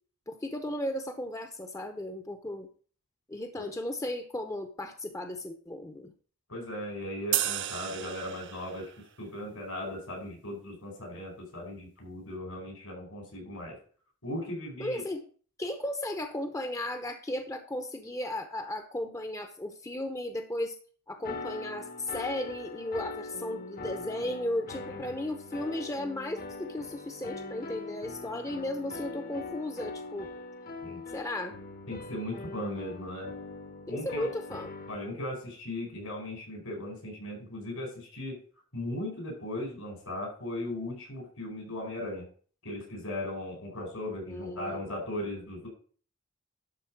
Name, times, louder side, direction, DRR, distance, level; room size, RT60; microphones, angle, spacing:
voice 1, 0.3-2.7 3.3-6.1 14.8-15.2 15.6-20.8 21.1-30.3 31.1-31.6 33.9-34.7 44.3-44.8, left 1 dB, 15° left, 7 dB, 0.7 m, -35 dB
voice 2, 6.5-8.9 9.2-13.8 14.2-15.0 24.9-25.0 30.8-31.0 31.9-33.3 33.9-34.3 34.9-38.4 38.7-42.2 42.6-45.7, left 1 dB, 80° left, 2 dB, 4.8 m, -37 dB
sound 1, 7.3-8.9, right 13 dB, 55° right, 0.6 m, -32 dB
sound 2, 21.2-35.0, left 3 dB, 40° left, 0.9 m, -42 dB
11.5 x 4.2 x 6.1 m, 0.43 s
head